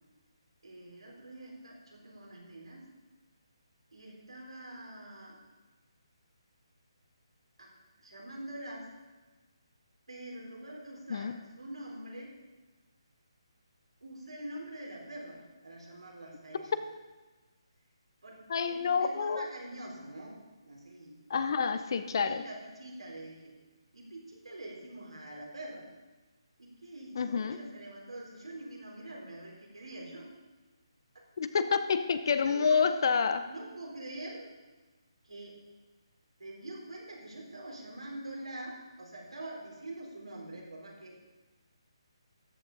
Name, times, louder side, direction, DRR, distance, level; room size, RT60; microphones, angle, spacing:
voice 1, 0.6-2.9 3.9-5.4 7.6-7.7 8.0-8.9 10.1-12.3 14.0-16.8 18.2-21.2 22.0-23.5 23.9-25.9 26.6-30.3 31.1-31.3 32.2-32.9 33.5-34.5 35.2-35.5 36.4-41.2, right 1 dB, 80° right, -2 dB, 3.6 m, -45 dB
voice 2, 18.5-19.5 21.3-22.4 27.1-27.6 31.4-33.5, left 5 dB, 50° left, 11 dB, 0.7 m, -28 dB
13.5 x 8.1 x 3.9 m, 1.2 s
figure-of-eight pair, 150°, 3 cm